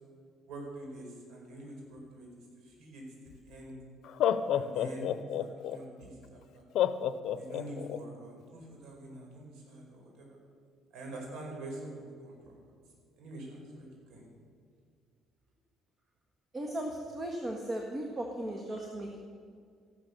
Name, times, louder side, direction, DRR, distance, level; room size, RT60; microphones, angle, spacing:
voice 1, 0.5-2.3 2.6-3.8 4.5-5.1 5.4-6.7 7.3-10.4 10.9-12.6 13.2-14.3, right 1 dB, 80° right, 0 dB, 5.0 m, -45 dB
Laughter, 3.3-3.4 4.0-5.8 6.8-8.0, left 11 dB, 65° left, 0.7 m, -29 dB
voice 2, 16.5-19.2, right 1 dB, 25° right, 1 dB, 1.7 m, -36 dB
14.0 x 12.5 x 6.8 m, 2.1 s
cardioid pair, 120°, 0 cm